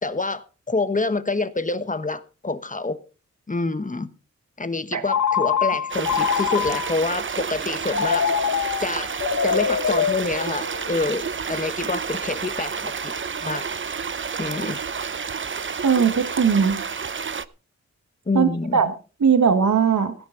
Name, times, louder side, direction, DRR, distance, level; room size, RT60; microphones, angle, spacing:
voice 1, 0.0-3.0 3.5-4.1 4.6-8.3 8.8-9.1 9.4-13.1 13.4-13.7 14.4-14.8 18.3-18.8, left 3 dB, 25° left, 12 dB, 1.3 m, -27 dB
Telephone, 5.1-7.1 7.9-11.0, left 7 dB, 75° left, 1.6 m, -24 dB
sound 1, 5.9-17.4, right 6 dB, 40° right, 0.7 m, -30 dB
voice 2, 15.8-16.8 18.3-18.9 19.2-20.1, right 6 dB, 75° right, 8 dB, 1.6 m, -19 dB
16.5 x 10.5 x 4.0 m, 0.34 s
cardioid pair, 70°, 29 cm